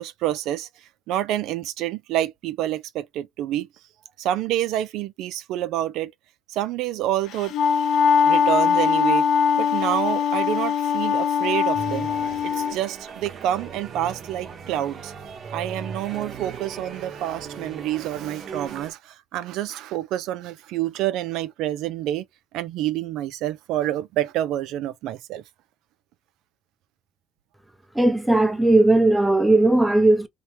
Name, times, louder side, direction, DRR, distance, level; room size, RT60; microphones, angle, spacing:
voice 1, 0.0-3.7 4.2-6.1 6.5-7.5 8.2-9.3 9.6-12.1 12.4-15.1 15.5-22.2 22.5-25.4, right 12 dB, 70° right, 0.3 m, -28 dB
Wind instrument woodwind instrument, 7.3-12.8, left 7 dB, 65° left, 0.5 m, -21 dB
sound 1, 11.7-18.9, right 5 dB, 45° right, 0.9 m, -38 dB
voice 2, 27.9-30.3, right 2 dB, 5° right, 0.6 m, -17 dB
2.7 x 2.1 x 2.9 m
supercardioid pair, 90°, 0 cm